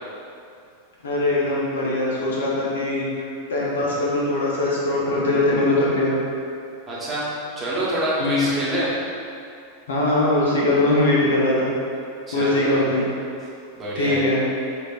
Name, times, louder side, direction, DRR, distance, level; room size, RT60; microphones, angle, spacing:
voice 1, 1.0-3.2 3.5-6.2 8.2-8.5 9.9-11.7 12.3-13.1 14.0-14.4, left 2 dB, 65° left, -5 dB, 0.7 m, -21 dB
voice 2, 6.9-7.3 7.6-8.9 12.3-12.8 13.7-14.2, right 1 dB, 20° right, -9 dB, 1.0 m, -26 dB
5.0 x 2.5 x 2.4 m, 2.5 s
figure-of-eight pair, 90°, 0 cm